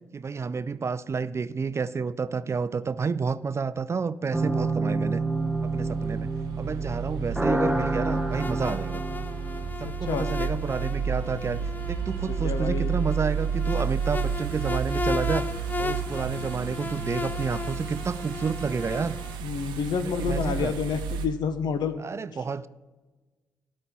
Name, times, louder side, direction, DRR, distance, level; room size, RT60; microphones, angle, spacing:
voice 1, 0.1-5.2 5.6-6.3 6.6-9.0 9.8-11.6 11.9-15.5 15.8-19.2 20.0-20.8 22.0-22.7, right 5 dB, 35° right, 0.4 m, -30 dB
sound 1, 4.3-9.7, right 2 dB, 5° right, 0.8 m, -28 dB
sound 2, 5.1-21.3, right 7 dB, 75° right, 0.8 m, -32 dB
sound 3, 8.3-19.4, left 4 dB, 25° left, 0.6 m, -36 dB
voice 2, 12.3-12.9 19.4-22.0, left 6 dB, 65° left, 0.9 m, -29 dB
12.5 x 4.3 x 8.1 m
hypercardioid pair, 45°, 8 cm